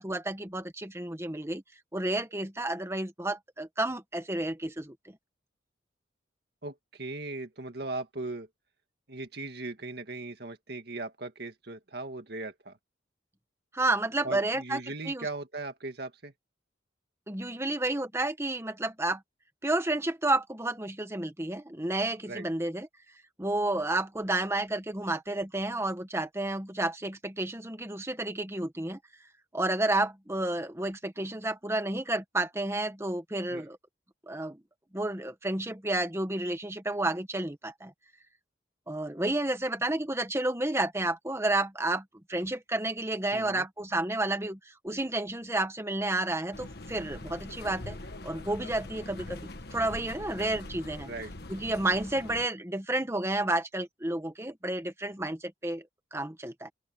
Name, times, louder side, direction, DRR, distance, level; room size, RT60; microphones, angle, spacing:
voice 1, 0.0-1.6 1.9-4.9 13.7-14.8 15.0-15.3 17.3-19.2 19.6-22.9 23.4-29.0 29.5-33.8 34.3-34.6 34.9-37.9 38.9-42.0 42.3-48.0 48.2-49.4 49.7-51.1 51.5-55.8 56.1-56.7, right 2 dB, 15° right, 1.4 m, -31 dB
voice 2, 6.6-8.5 9.1-12.8 14.2-16.3 22.3-22.4 33.5-33.7 43.3-43.7 51.1-51.3, right 2 dB, 55° right, 2.0 m, -38 dB
Tram indoor, 46.5-52.5, left 2 dB, 55° left, 1.5 m, -42 dB
open air
head